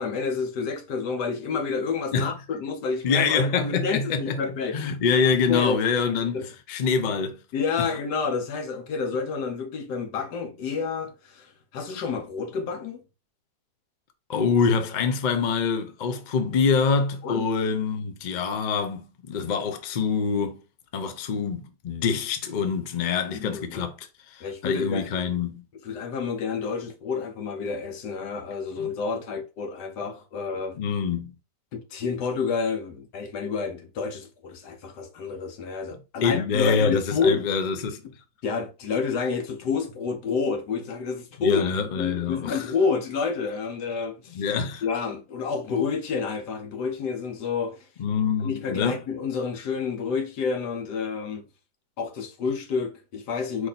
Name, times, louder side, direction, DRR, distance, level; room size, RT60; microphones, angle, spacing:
voice 1, 0.0-4.9 5.5-5.8 6.3-6.5 7.5-13.0 17.2-17.5 23.3-23.8 24.4-25.1 25.8-30.8 31.7-37.5 38.4-41.6 42.0-44.4 44.8-47.9 48.4-51.4 52.0-53.7, left 5 dB, 80° left, 1.5 m, -29 dB
voice 2, 3.0-4.4 4.7-6.4 6.7-7.4 14.3-20.6 20.9-25.6 30.8-31.3 36.2-38.0 41.4-42.7 44.3-44.8 48.0-49.0, left 5 dB, 55° left, 0.5 m, -25 dB
4.8 x 2.7 x 4.0 m
omnidirectional pair, 1.8 m